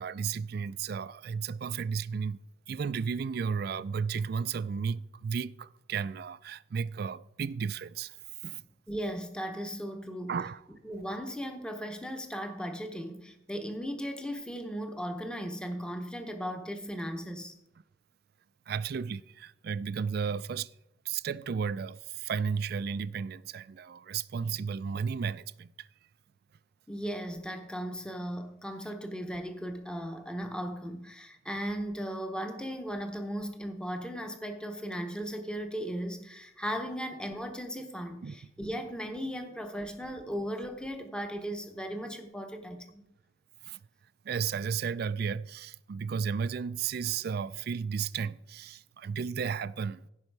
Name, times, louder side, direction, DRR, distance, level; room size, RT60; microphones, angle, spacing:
voice 1, 0.0-2.4 2.7-8.2 8.4-8.6 10.3-10.6 18.7-20.7 21.1-25.9 38.2-38.4 43.6-43.8 44.2-50.0, right 6 dB, 55° right, 0.4 m, -33 dB
voice 2, 8.9-10.4 10.8-17.5 26.9-43.0, equal, 5° left, 0.8 m, -37 dB
15.5 x 5.5 x 4.7 m
head